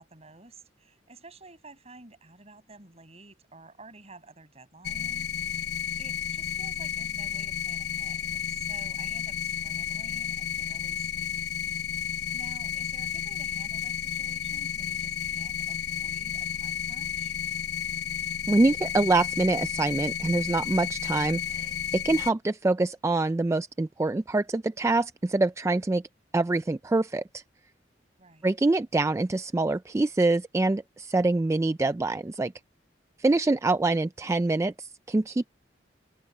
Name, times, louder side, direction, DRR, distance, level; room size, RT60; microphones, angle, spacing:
voice 1, 0.0-11.6 11.9-17.4 28.2-28.5, right 3 dB, 35° right, 6.5 m, -51 dB
sound 1, 4.8-22.3, left 8 dB, 65° left, 0.9 m, -32 dB
voice 2, 18.5-26.0 26.3-27.4 28.4-32.5 33.2-35.5, right 2 dB, 15° right, 0.3 m, -25 dB
open air
head